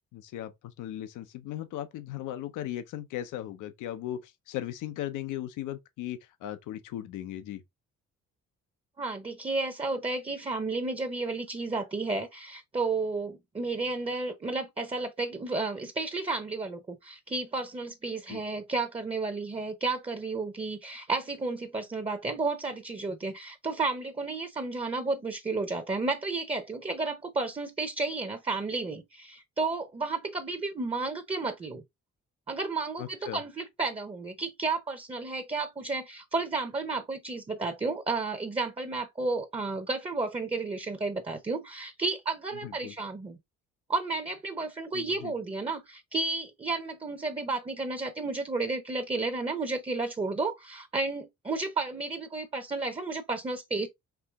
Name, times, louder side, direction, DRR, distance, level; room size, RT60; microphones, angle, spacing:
voice 1, 0.1-7.6 18.3-18.4 33.0-33.4 42.6-42.9 44.9-45.3, left 12 dB, 90° left, 0.7 m, -37 dB
voice 2, 9.0-31.8 32.5-43.4 43.9-53.9, right 3 dB, 20° right, 0.7 m, -32 dB
4.7 x 2.8 x 3.4 m
cardioid pair, 90°, 30 cm